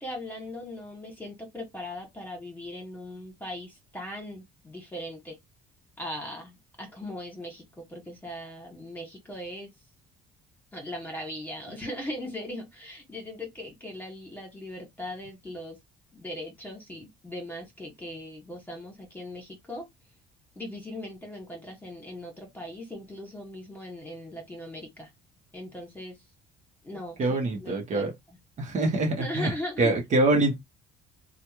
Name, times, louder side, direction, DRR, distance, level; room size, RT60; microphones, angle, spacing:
voice 1, 0.0-5.4 6.0-9.7 10.7-15.8 16.1-19.9 20.6-25.1 25.5-26.2 26.8-28.4 29.1-30.0, left 1 dB, 10° left, 1.7 m, -39 dB
voice 2, 27.2-28.1 28.6-29.5 29.8-30.6, right 2 dB, 45° right, 1.2 m, -24 dB
3.1 x 2.4 x 2.9 m
cardioid pair, 110°, 17 cm